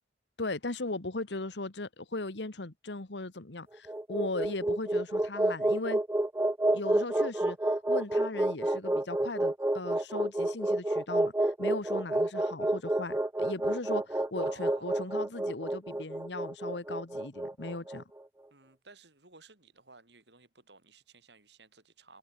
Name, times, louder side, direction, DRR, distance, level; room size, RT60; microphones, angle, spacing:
voice 1, 0.4-6.0 6.7-7.6 7.9-18.0, left 2 dB, 75° left, 1.6 m, -38 dB
sound 1, 3.7-18.0, right 1 dB, 15° right, 0.5 m, -29 dB
voice 2, 14.4-15.2 18.5-22.2, right 3 dB, 70° right, 6.0 m, -56 dB
head